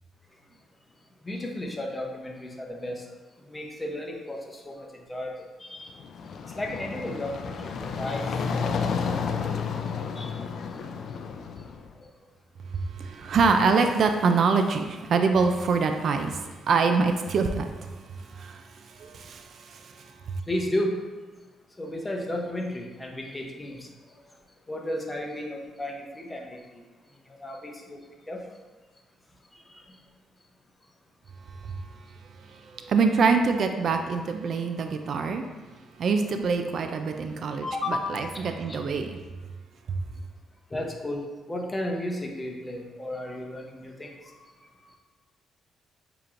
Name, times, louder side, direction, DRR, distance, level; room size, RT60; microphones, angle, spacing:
voice 1, 1.2-3.0 3.5-5.9 6.6-8.3 9.5-9.6 10.2-10.4 20.5-20.9 21.8-23.9 24.7-26.8 27.4-28.0 28.3-28.4 29.5-30.0 37.6-38.1 38.7-38.8 40.7-41.2 41.5-44.4, left 1 dB, 15° left, 1 dB, 0.8 m, -33 dB
sound 1, 5.9-11.9, left 5 dB, 60° left, 0.3 m, -31 dB
voice 2, 12.9-17.7 18.3-20.4 32.5-35.4 36.0-39.2 39.9-40.0, right 4 dB, 60° right, 6 dB, 0.3 m, -25 dB
6.6 x 2.9 x 2.5 m, 1.3 s
cardioid pair, 90°, 0 cm